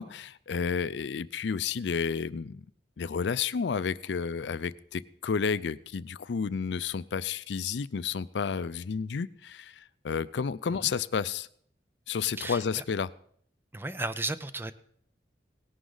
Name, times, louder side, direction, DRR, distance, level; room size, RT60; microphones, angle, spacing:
voice 1, 0.0-2.6 3.0-11.5 12.1-13.1, left 6 dB, 80° left, 17 dB, 0.4 m, -31 dB
voice 2, 12.4-12.8 13.7-14.7, right 2 dB, 10° right, 13 dB, 0.5 m, -34 dB
18.0 x 11.0 x 3.9 m, 0.63 s
head